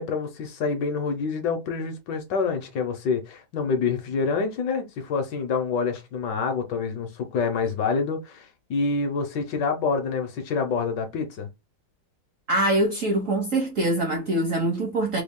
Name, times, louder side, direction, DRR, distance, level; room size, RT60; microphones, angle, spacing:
voice 1, 0.0-11.5, left 5 dB, 65° left, 1.2 m, -27 dB
voice 2, 12.5-15.2, right 1 dB, 60° right, 0.8 m, -24 dB
3.5 x 2.3 x 3.5 m
omnidirectional pair, 2.3 m